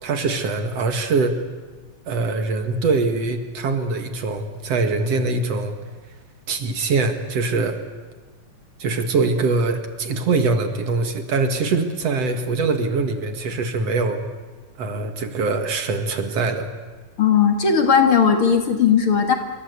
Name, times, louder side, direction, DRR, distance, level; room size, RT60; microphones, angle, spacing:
voice 1, 0.0-1.4 2.1-5.7 6.5-7.8 8.8-14.2 14.8-16.7, right 3 dB, 60° right, 7 dB, 2.9 m, -23 dB
voice 2, 17.2-19.4, left 7 dB, 45° left, 5 dB, 2.8 m, -17 dB
29.0 x 23.5 x 8.3 m, 1.4 s
omnidirectional pair, 3.4 m